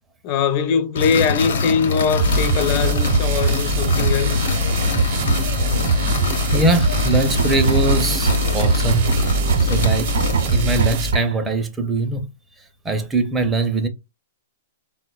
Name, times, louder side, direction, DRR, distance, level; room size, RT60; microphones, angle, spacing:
voice 1, 0.2-4.5, left 6 dB, 45° left, 0.5 m, -21 dB
sound 1, 0.9-11.0, left 3 dB, 75° left, 0.9 m, -24 dB
sound 2, 2.2-11.1, right 3 dB, 50° right, 0.7 m, -22 dB
voice 2, 6.3-9.2 9.6-10.2 10.5-12.3 12.8-13.9, right 2 dB, 15° right, 0.5 m, -22 dB
sound 3, 7.4-11.5, right 4 dB, 90° right, 0.6 m, -25 dB
3.8 x 2.1 x 2.3 m
hypercardioid pair, 130°, 0 cm